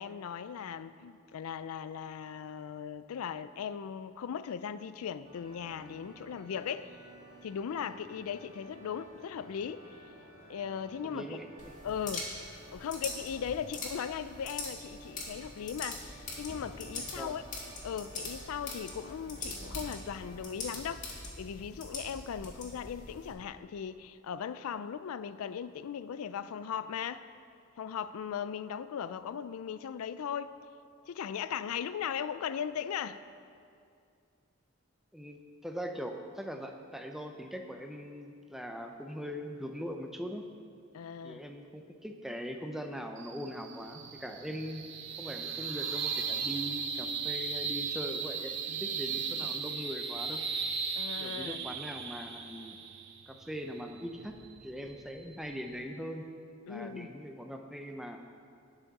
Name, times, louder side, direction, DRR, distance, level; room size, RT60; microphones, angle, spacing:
voice 1, 0.0-7.0 7.4-10.0 10.5-11.4 11.8-12.3 12.7-17.4 17.8-27.2 27.8-30.6 31.1-33.2 40.9-41.4 50.9-51.6 56.7-57.1, left 7 dB, 90° left, 0.4 m, -38 dB
sound 1, 5.2-20.4, right 2 dB, 25° right, 2.4 m, -54 dB
voice 2, 11.0-11.8 17.2-17.4 35.1-40.5 41.2-44.9 45.2-50.4 51.2-52.8 53.3-56.3 56.6-58.2, equal, ahead, 0.5 m, -41 dB
sound 2, 11.6-23.3, left 3 dB, 35° left, 1.8 m, -43 dB
sound 3, 43.2-55.8, right 6 dB, 55° right, 0.7 m, -37 dB
18.0 x 6.1 x 4.1 m
head